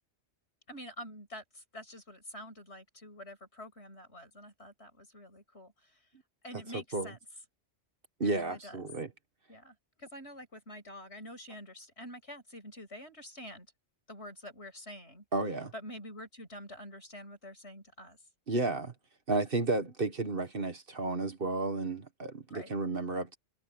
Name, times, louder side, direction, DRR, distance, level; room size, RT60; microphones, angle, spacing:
voice 1, 0.7-6.0 6.4-7.2 8.2-8.8 9.5-13.7 14.1-15.2 15.7-18.2 22.5-22.8, left 1 dB, 70° left, 8.3 m, -47 dB
voice 2, 6.7-7.1 8.2-9.1 15.3-15.7 18.5-18.9 19.3-23.4, right 3 dB, 50° right, 1.9 m, -32 dB
omnidirectional pair, 1.2 m